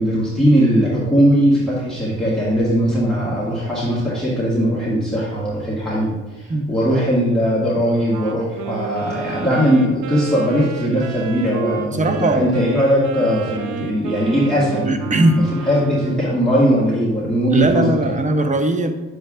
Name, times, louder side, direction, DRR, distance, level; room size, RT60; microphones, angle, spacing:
voice 1, 0.0-17.9, equal, ahead, -9 dB, 1.9 m, -19 dB
Wind instrument woodwind instrument, 8.1-16.4, right 6 dB, 85° right, 0.6 m, -32 dB
voice 2, 11.9-12.6 14.8-15.4 17.5-19.0, right 2 dB, 25° right, 7 dB, 0.7 m, -19 dB
7.8 x 6.7 x 2.5 m, 1.2 s
cardioid pair, 90°, 30 cm